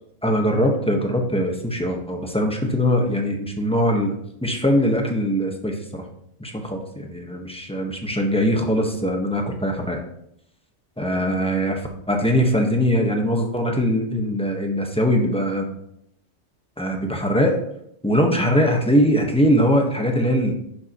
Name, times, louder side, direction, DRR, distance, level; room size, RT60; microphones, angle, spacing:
voice 1, 0.2-4.1 4.4-6.0 6.4-10.0 11.0-15.7 16.8-17.5 18.0-20.5, equal, 5° left, 2 dB, 1.2 m, -21 dB
10.5 x 7.2 x 3.0 m, 0.72 s
omnidirectional pair, 1.3 m